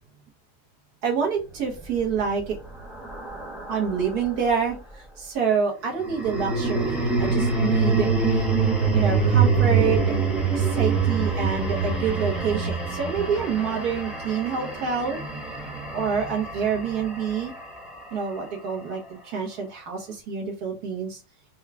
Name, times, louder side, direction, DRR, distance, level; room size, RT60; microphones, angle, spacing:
voice 1, 1.0-2.6 3.7-8.5 8.9-10.1 10.6-15.2 15.9-17.5 18.1-21.2, right 6 dB, 70° right, 0 dB, 1.7 m, -27 dB
sound 1, 1.8-4.3 5.9-18.2, right 4 dB, ahead, 0.6 m, -25 dB
4.5 x 2.3 x 3.5 m, 0.30 s
omnidirectional pair, 1.7 m